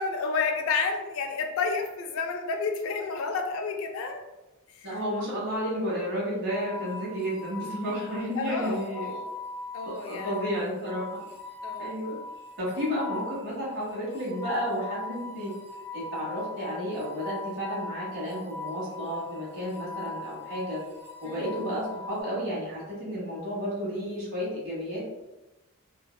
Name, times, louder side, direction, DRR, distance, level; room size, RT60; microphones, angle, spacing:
voice 1, 0.0-4.2 4.7-5.0 8.4-9.3 9.7-10.3 11.6-11.9 21.2-21.6, left 4 dB, 70° left, 4 dB, 0.3 m, -30 dB
voice 2, 4.8-9.1 10.1-11.2 11.8-12.2 12.6-15.5 15.9-20.8 21.2-25.1, equal, 60° right, -6 dB, 1.1 m, -32 dB
sound 1, 6.5-22.2, left 3 dB, 10° left, 0.6 m, -41 dB
2.6 x 2.1 x 2.2 m, 1.0 s
head